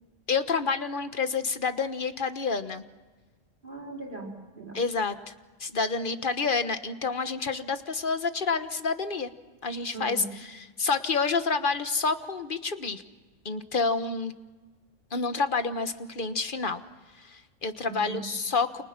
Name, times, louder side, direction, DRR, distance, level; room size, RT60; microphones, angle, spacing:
voice 1, 0.3-2.8 4.7-5.3 5.6-9.3 9.6-13.0 13.4-14.3 15.1-16.8 17.2-18.8, left 4 dB, 45° left, 10 dB, 1.4 m, -28 dB
voice 2, 3.6-4.8 9.9-10.3 17.8-18.4, right 3 dB, 40° right, -2 dB, 4.3 m, -40 dB
29.5 x 28.5 x 6.0 m, 1.3 s
omnidirectional pair, 1.3 m